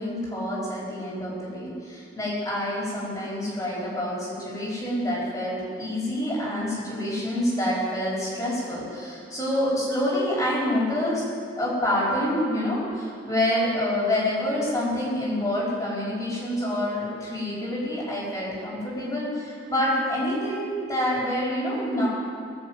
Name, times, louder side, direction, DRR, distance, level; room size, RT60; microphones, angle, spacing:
voice 1, 0.0-11.2 11.6-22.1, left 1 dB, 20° left, -7 dB, 4.7 m, -27 dB
19.5 x 7.4 x 8.1 m, 2.3 s
head